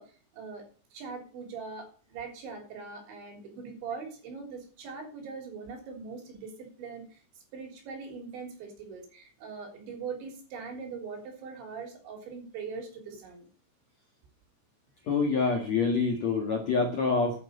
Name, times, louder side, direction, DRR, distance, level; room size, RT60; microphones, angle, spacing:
voice 1, 0.0-7.2 7.5-13.5, right 5 dB, 70° right, 2 dB, 5.8 m, -41 dB
voice 2, 15.0-17.4, left 4 dB, 55° left, 1 dB, 2.0 m, -26 dB
11.0 x 8.9 x 6.8 m, 0.39 s
omnidirectional pair, 5.6 m